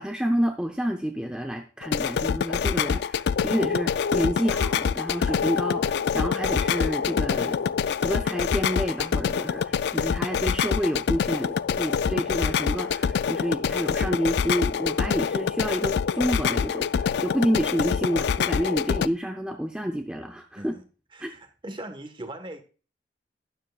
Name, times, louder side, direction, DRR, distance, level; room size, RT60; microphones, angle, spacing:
voice 1, 0.0-7.6 8.0-20.7 21.2-21.3, equal, 5° right, 0.6 m, -29 dB
sound 1, 1.8-19.1, left 7 dB, 65° left, 0.3 m, -26 dB
voice 2, 21.1-22.6, right 1 dB, 25° right, 1.3 m, -39 dB
12.0 x 10.0 x 2.3 m
head